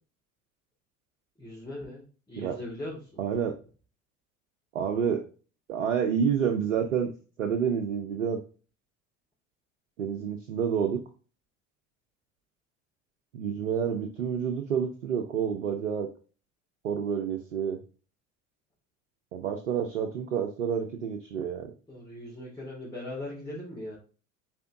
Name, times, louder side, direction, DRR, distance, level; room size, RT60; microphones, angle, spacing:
voice 1, 1.4-3.2 21.9-24.0, left 1 dB, 10° left, -6 dB, 3.0 m, -39 dB
voice 2, 3.2-3.5 4.7-5.3 5.7-7.1 7.4-8.4 10.0-11.0 13.3-16.1 16.8-17.8 19.3-21.7, right 7 dB, 80° right, 5 dB, 0.8 m, -29 dB
5.7 x 4.5 x 3.7 m, 0.37 s
figure-of-eight pair, 60°, 38 cm